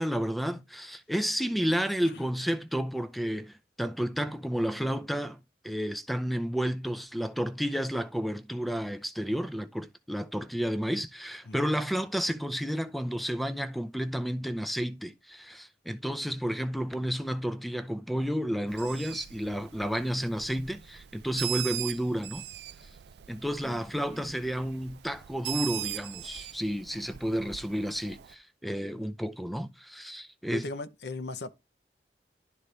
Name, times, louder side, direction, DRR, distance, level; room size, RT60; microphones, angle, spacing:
voice 1, 0.0-5.4 5.6-22.5 23.3-30.7, equal, ahead, 0.5 m, -31 dB
voice 2, 11.4-11.8 28.9-29.0 30.5-31.5, left 3 dB, 70° left, 0.7 m, -38 dB
Bird, 18.7-28.3, right 14 dB, 65° right, 0.3 m, -40 dB
11.5 x 4.0 x 3.3 m
head